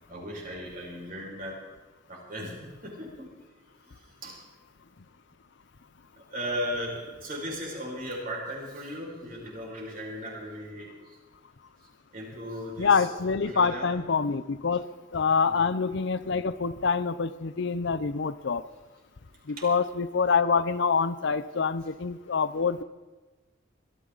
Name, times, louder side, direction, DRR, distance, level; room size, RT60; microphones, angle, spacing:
voice 1, 0.1-1.6 2.1-3.3 4.2-4.4 6.3-10.9 12.1-13.1 13.4-13.9 15.4-15.7 19.6-19.7, equal, 45° right, -3 dB, 5.7 m, -36 dB
voice 2, 12.8-18.6 19.5-22.8, left 5 dB, 60° left, 14 dB, 0.6 m, -26 dB
22.0 x 14.0 x 4.0 m, 1.3 s
head